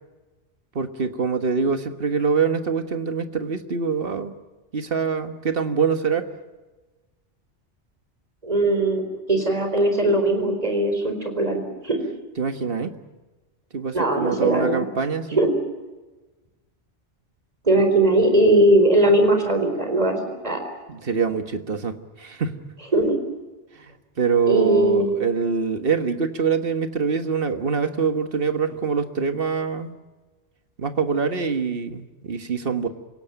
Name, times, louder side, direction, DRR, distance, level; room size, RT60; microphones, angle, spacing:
voice 1, 0.8-4.3 4.7-6.3 12.4-12.9 13.7-15.5 20.9-22.7 23.8-29.9 30.8-32.9, right 5 dB, 55° right, 8 dB, 1.6 m, -24 dB
voice 2, 8.4-9.0 9.3-12.0 13.9-14.8 15.4-15.5 17.6-20.2 20.4-20.6 22.9-23.2 24.5-25.1, right 1 dB, 35° right, 5 dB, 4.3 m, -19 dB
27.0 x 17.0 x 9.1 m, 1.2 s
omnidirectional pair, 1.2 m